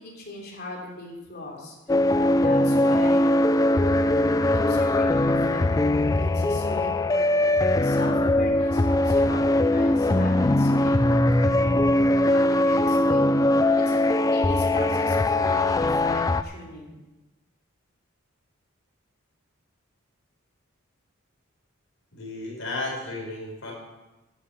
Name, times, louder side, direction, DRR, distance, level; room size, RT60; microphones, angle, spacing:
voice 1, 0.0-1.8 2.4-3.3 4.5-11.8 12.2-17.0, left 2 dB, 50° left, 0 dB, 3.2 m, -39 dB
sound 1, 1.9-16.4, left 1 dB, 15° left, 0.4 m, -21 dB
voice 2, 22.1-23.7, left 2 dB, 70° left, -2 dB, 4.7 m, -33 dB
11.0 x 10.5 x 5.7 m, 1.0 s
head